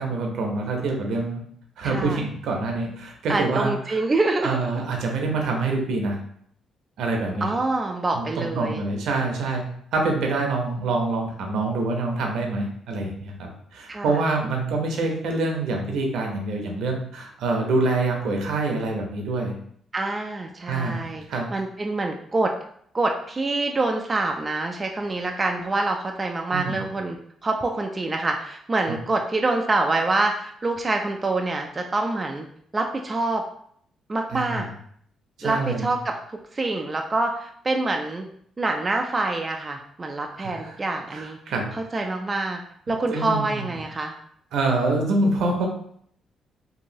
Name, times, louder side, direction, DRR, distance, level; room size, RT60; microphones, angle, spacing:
voice 1, 0.0-1.4 1.8-4.0 4.4-6.2 7.0-7.5 8.1-9.6 9.9-19.5 20.7-21.5 26.5-26.8 28.9-29.0 34.3-34.7 35.4-35.9 40.4-40.8 41.1-42.0 43.1-43.7 44.5-45.7, right 3 dB, 80° right, 1 dB, 0.7 m, -26 dB
voice 2, 1.8-2.2 3.3-4.6 7.4-8.8 13.9-14.2 19.9-22.5 22.9-32.5 32.7-33.4 34.1-34.7 35.4-38.3 38.6-41.4 41.7-42.6 42.9-44.1, right 2 dB, 25° right, 2 dB, 0.3 m, -26 dB
2.9 x 2.7 x 2.7 m, 0.65 s
cardioid pair, 90°, 0 cm